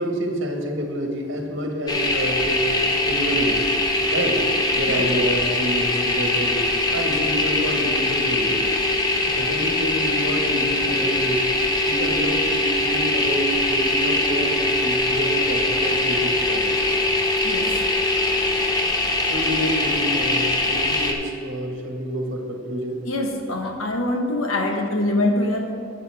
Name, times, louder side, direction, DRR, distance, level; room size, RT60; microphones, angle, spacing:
voice 1, 0.0-3.7 4.1-4.4 4.7-6.6 6.9-11.4 11.9-16.7 19.2-23.0, equal, 60° right, 2 dB, 1.5 m, -28 dB
sound 1, 1.9-21.1, left 2 dB, 20° left, 0.8 m, -22 dB
voice 2, 17.4-17.8 23.1-25.7, left 1 dB, 85° left, 3 dB, 1.2 m, -24 dB
12.0 x 8.3 x 3.5 m, 2.6 s
head